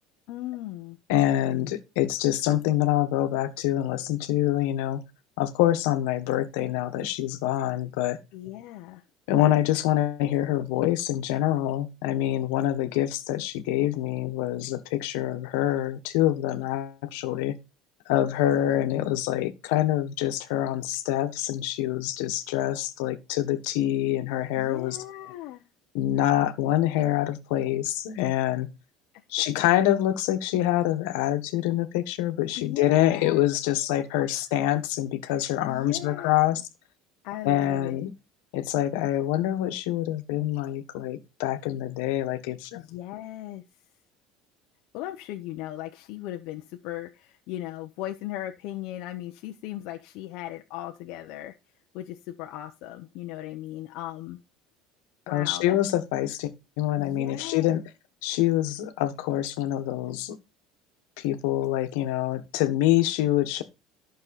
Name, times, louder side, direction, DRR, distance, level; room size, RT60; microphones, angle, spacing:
voice 1, 0.3-1.0 8.3-9.0 24.6-25.6 32.6-33.4 34.2-34.3 35.6-36.6 37.2-38.0 42.7-43.6 44.9-51.6 51.9-54.4 55.3-55.8 57.0-57.8, left 14 dB, 60° left, 0.9 m, -37 dB
voice 2, 1.1-5.0 5.4-8.2 9.3-17.6 18.1-25.0 25.9-28.7 29.3-36.6 37.4-38.1 38.5-42.8 55.3-57.8 58.2-60.4 61.2-63.6, left 13 dB, 85° left, 1.5 m, -26 dB
11.5 x 6.3 x 4.1 m
cardioid pair, 155°, 0 cm